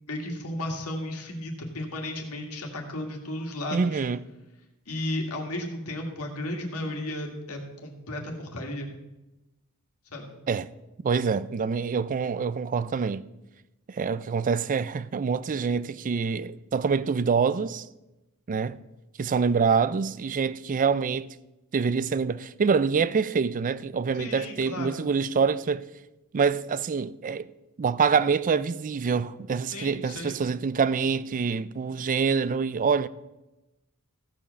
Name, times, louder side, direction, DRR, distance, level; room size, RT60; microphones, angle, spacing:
voice 1, 0.1-4.0 4.9-8.9 10.1-10.4 24.1-25.0 29.7-30.4, left 1 dB, 75° left, 2.1 m, -34 dB
voice 2, 3.7-4.2 10.5-10.7 11.0-13.3 13.9-17.9 18.5-18.8 19.2-21.3 21.7-25.8 26.3-27.5 27.8-33.1, right 5 dB, 35° right, 0.4 m, -26 dB
15.5 x 5.2 x 6.9 m
head